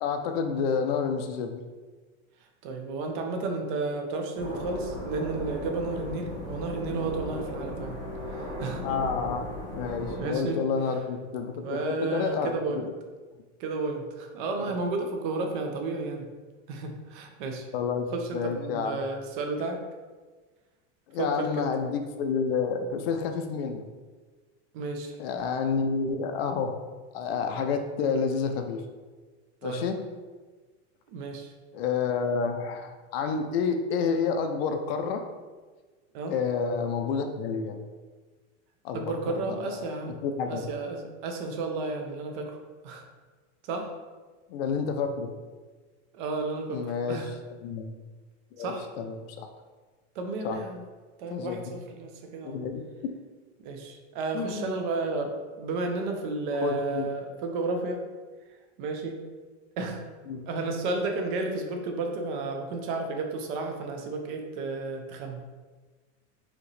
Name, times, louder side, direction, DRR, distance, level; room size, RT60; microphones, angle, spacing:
voice 1, 0.0-1.6 8.8-9.4 9.7-12.5 17.7-18.1 18.3-18.9 21.1-23.8 25.2-26.8 27.1-28.8 29.6-30.1 31.7-35.3 36.3-37.8 38.8-39.7 40.1-40.7 44.5-45.3 46.7-47.3 47.6-47.9 48.6-49.5 50.4-50.6 51.3-51.6 52.4-53.1 54.3-54.7 56.6-57.1 60.3-60.4, left 5 dB, 55° left, 6 dB, 0.5 m, -29 dB
voice 2, 2.6-8.0 8.3-8.8 10.2-10.6 11.6-12.8 13.6-16.3 16.7-17.7 18.1-19.8 21.2-21.7 24.7-25.1 29.6-29.8 31.1-31.5 36.1-36.4 38.9-42.6 42.8-43.0 43.6-43.9 46.1-46.8 47.1-47.3 48.6-48.9 50.2-50.8 51.2-52.6 53.6-58.0 58.8-59.2 59.8-60.0 60.5-65.4, right 3 dB, 45° right, 3 dB, 0.6 m, -32 dB
sound 1, 4.4-10.2, left 1 dB, 10° right, 1.2 m, -36 dB
4.9 x 2.9 x 3.2 m, 1.3 s
supercardioid pair, 170°, 37 cm